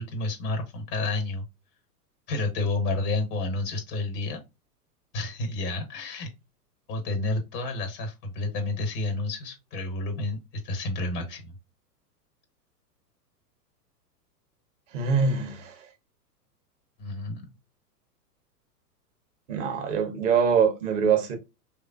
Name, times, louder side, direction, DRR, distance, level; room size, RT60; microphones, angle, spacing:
voice 1, 0.0-1.5 2.3-4.4 5.1-6.3 6.9-11.5 17.0-17.5, left 2 dB, 15° left, 0.4 m, -30 dB
voice 2, 14.9-15.7 19.5-21.4, right 6 dB, 50° right, 1.2 m, -24 dB
3.5 x 3.2 x 2.2 m
figure-of-eight pair, 100°, 49 cm